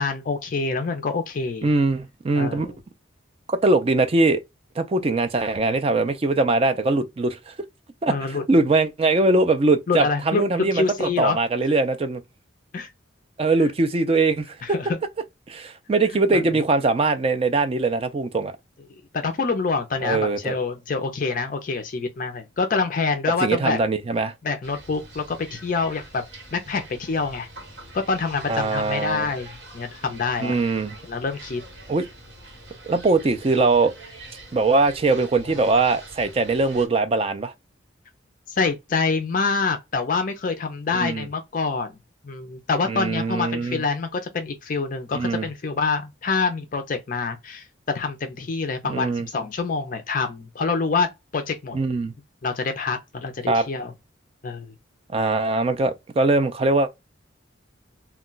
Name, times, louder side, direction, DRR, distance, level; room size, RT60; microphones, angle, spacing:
voice 1, 0.0-1.7 2.4-2.7 8.1-8.4 9.9-11.4 12.7-12.9 14.6-14.9 16.3-16.4 19.1-23.8 24.4-26.2 26.5-27.5 27.9-29.5 29.7-30.6 31.1-31.6 38.6-41.9 42.2-47.6 47.9-51.8 52.4-53.9 54.4-54.7, left 4 dB, 40° left, 0.4 m, -26 dB
voice 2, 1.6-2.7 3.5-4.4 4.8-7.5 8.0-12.2 13.4-14.6 15.5-18.5 20.0-20.6 23.4-24.3 28.5-29.3 30.4-31.0 31.9-32.1 32.9-33.9 34.5-37.5 40.9-41.3 42.9-43.8 45.1-45.5 48.8-49.3 51.7-52.1 53.5-53.7 55.1-56.9, right 3 dB, 30° right, 0.4 m, -21 dB
sound 1, 24.6-36.9, right 1 dB, 55° right, 1.3 m, -44 dB
2.3 x 2.2 x 3.7 m
head